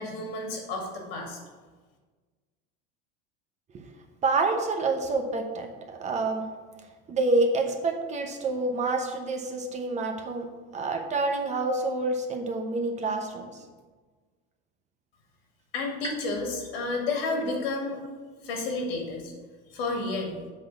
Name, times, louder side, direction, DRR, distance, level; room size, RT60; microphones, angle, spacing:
voice 1, 0.0-1.4 15.7-18.0 18.4-19.3 19.7-20.4, left 3 dB, 90° left, 1 dB, 2.3 m, -31 dB
voice 2, 4.2-6.4 7.1-10.4 10.7-13.5, right 3 dB, 25° right, 4 dB, 0.8 m, -27 dB
7.5 x 3.9 x 6.6 m, 1.4 s
supercardioid pair, 145°, 29 cm